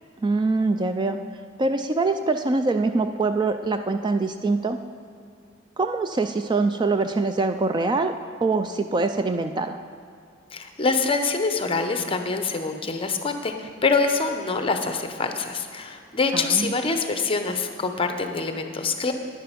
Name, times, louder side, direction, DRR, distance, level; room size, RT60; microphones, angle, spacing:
voice 1, 0.2-1.2 1.6-4.8 5.8-8.1 8.4-9.8 16.3-16.7, right 3 dB, 25° right, 7 dB, 0.3 m, -24 dB
voice 2, 10.5-19.1, left 4 dB, 30° left, 6 dB, 0.8 m, -25 dB
10.5 x 10.0 x 5.1 m, 2.3 s
head